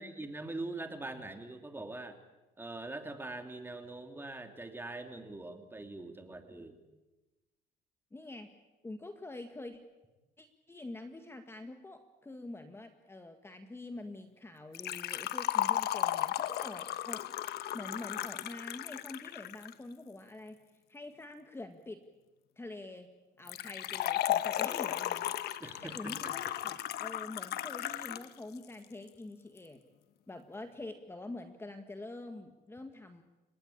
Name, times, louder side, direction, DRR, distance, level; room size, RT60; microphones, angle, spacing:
voice 1, 0.0-2.2 2.6-6.8 25.6-26.5, right 2 dB, 15° right, 6 dB, 3.0 m, -43 dB
voice 2, 8.1-8.5 8.8-9.8 10.4-17.3 17.7-20.6 20.9-22.0 22.6-23.1 23.4-25.4 25.8-29.8 30.3-33.2, left 2 dB, 15° left, 6 dB, 1.8 m, -46 dB
Liquid, 14.7-19.7 23.5-28.3 28.6-28.7 29.6-29.7, left 13 dB, 70° left, 1.2 m, -35 dB
30.0 x 17.5 x 8.7 m, 1.1 s
cardioid pair, 110°, 17 cm